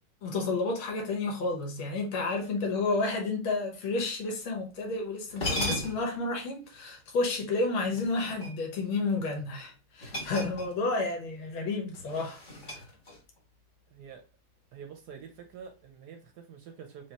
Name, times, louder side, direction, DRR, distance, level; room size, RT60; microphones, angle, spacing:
voice 1, 0.2-12.4 12.7-12.8, left 3 dB, 90° left, 2.0 m, -31 dB
sound 1, 4.9-5.0 5.3-6.2 7.9-8.8 10.0-11.0 11.2-11.5 11.9-13.4, left 1 dB, 30° left, 1.1 m, -36 dB
voice 2, 13.9-14.2 14.7-17.1, right 7 dB, 70° right, 1.0 m, -47 dB
4.8 x 2.9 x 2.8 m
omnidirectional pair, 2.2 m